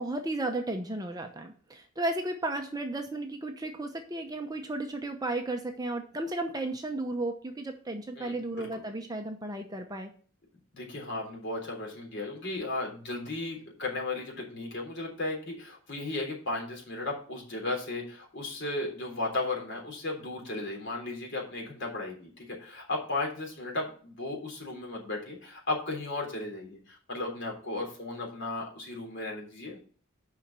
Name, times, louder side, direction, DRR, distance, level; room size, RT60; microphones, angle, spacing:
voice 1, 0.0-10.1, right 2 dB, 20° right, 5 dB, 0.8 m, -34 dB
voice 2, 8.2-8.7 10.7-29.8, left 2 dB, 55° left, -1 dB, 3.6 m, -35 dB
7.2 x 5.7 x 7.4 m, 0.43 s
head